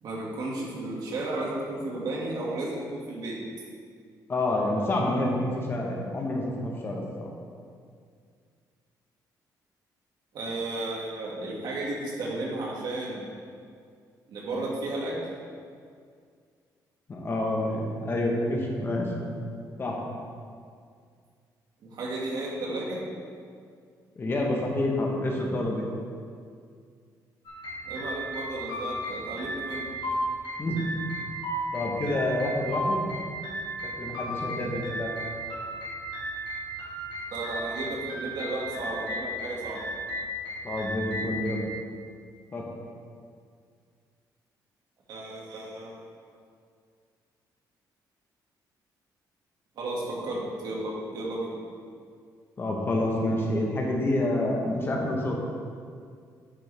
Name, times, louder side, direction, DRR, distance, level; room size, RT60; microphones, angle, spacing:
voice 1, 0.0-3.4 10.3-13.3 14.3-15.1 21.9-23.0 27.8-29.9 37.3-39.8 45.1-45.9 49.8-51.5, right 2 dB, 65° right, -4 dB, 2.2 m, -33 dB
voice 2, 4.3-7.3 17.1-19.1 19.8-20.0 24.2-25.9 30.6-30.8 31.7-33.1 33.8-35.1 40.6-41.7 42.5-42.7 52.6-55.4, left 1 dB, 30° left, -1 dB, 1.3 m, -28 dB
sound 1, 27.4-41.6, right 1 dB, 80° left, 2.3 m, -34 dB
10.0 x 6.7 x 3.5 m, 2.2 s
cardioid pair, 135°, 7 cm